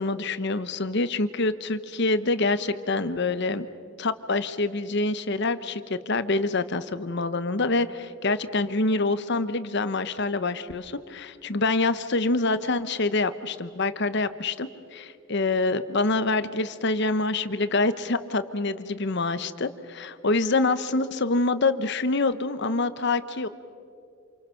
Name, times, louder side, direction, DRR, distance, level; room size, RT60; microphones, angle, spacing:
voice 1, 0.0-3.7 4.0-23.5, left 3 dB, 55° left, 12 dB, 1.0 m, -26 dB
28.5 x 27.5 x 5.8 m, 2.5 s
head